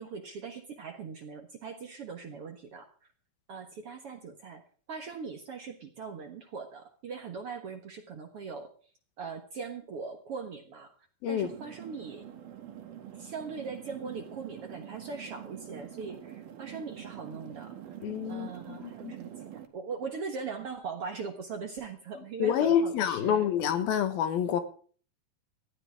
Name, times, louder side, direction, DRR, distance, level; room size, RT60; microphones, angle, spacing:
voice 1, 0.0-2.9 3.5-4.6 4.9-8.7 9.2-10.9 11.3-12.3 13.1-17.7 18.3-23.5, right 5 dB, 55° right, 5 dB, 1.8 m, -40 dB
sound 1, 11.4-19.7, right 10 dB, 85° right, 3.6 m, -45 dB
voice 2, 18.0-19.1 22.4-24.6, left 9 dB, 85° left, 10 dB, 3.2 m, -28 dB
19.0 x 15.0 x 3.6 m, 0.43 s
omnidirectional pair, 4.2 m